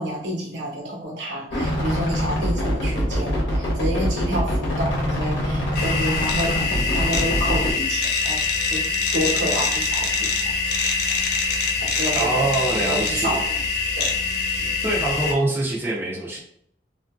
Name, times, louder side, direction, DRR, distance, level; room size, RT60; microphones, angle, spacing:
voice 1, 0.0-8.4 8.7-8.8 9.1-10.5 11.8-12.5 12.8-13.6 13.9-14.2 14.6-14.7, equal, 75° right, -2 dB, 1.0 m, -29 dB
sound 1, 1.5-7.7, equal, 75° left, 0.9 m, -24 dB
sound 2, 5.7-15.3, left 4 dB, 60° left, 0.5 m, -24 dB
voice 2, 12.1-13.4 14.8-16.4, right 2 dB, 10° right, -5 dB, 0.5 m, -24 dB
2.7 x 2.5 x 2.3 m, 0.68 s
head